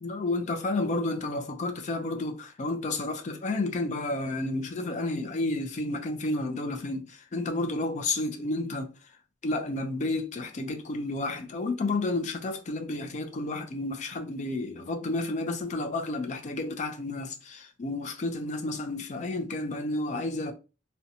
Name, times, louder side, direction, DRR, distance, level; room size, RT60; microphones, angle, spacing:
voice 1, 0.0-9.2 9.4-20.5, left 2 dB, 45° left, 0.4 m, -31 dB
2.5 x 2.1 x 2.7 m
head